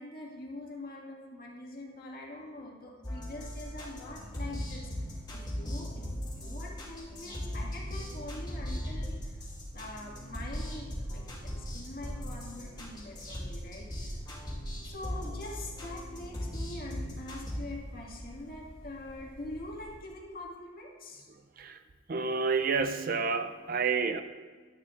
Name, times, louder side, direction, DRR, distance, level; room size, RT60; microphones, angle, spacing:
voice 1, 0.0-6.1 6.3-9.4 9.7-14.2 14.8-21.3, left 2 dB, 45° left, -2 dB, 1.9 m, -44 dB
sound 1, 3.0-17.6, equal, 20° left, 2.6 m, -39 dB
sound 2, 3.3-20.0, equal, 5° left, 2.6 m, -50 dB
voice 2, 22.1-24.2, right 5 dB, 40° right, 9 dB, 0.4 m, -29 dB
11.5 x 11.5 x 2.5 m, 1.5 s
head